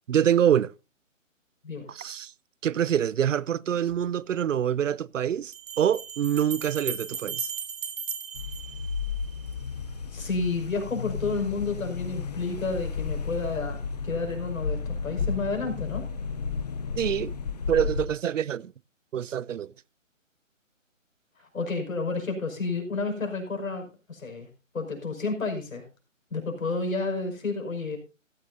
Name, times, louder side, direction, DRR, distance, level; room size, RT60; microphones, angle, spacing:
voice 1, 0.1-0.7 1.9-2.3 2.6-7.5 17.0-17.3 17.7-18.7 19.1-19.7, right 9 dB, 70° right, 0.6 m, -25 dB
sound 1, 3.9-4.0 5.5-9.5, right 6 dB, 45° right, 3.3 m, -36 dB
sound 2, 8.3-18.1, left 5 dB, 30° left, 0.7 m, -33 dB
voice 2, 10.1-16.1 21.4-24.5 24.7-25.9 26.3-28.0, left 3 dB, 85° left, 5.6 m, -31 dB
15.0 x 14.0 x 2.6 m
hypercardioid pair, 165°, 39 cm